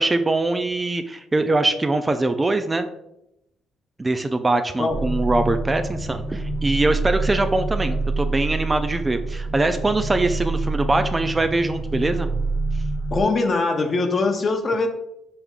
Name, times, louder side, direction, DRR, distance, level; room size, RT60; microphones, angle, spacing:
voice 1, 0.0-2.9 4.0-12.3, right 2 dB, 20° right, 8 dB, 0.3 m, -22 dB
sound 1, 4.9-13.2, right 3 dB, 40° right, 1.2 m, -26 dB
sound 2, 5.9-12.5, right 1 dB, 80° right, 1.4 m, -50 dB
voice 2, 13.1-14.9, left 3 dB, 40° left, 5 dB, 0.7 m, -22 dB
5.3 x 3.4 x 2.4 m, 0.82 s
cardioid pair, 90°, 0 cm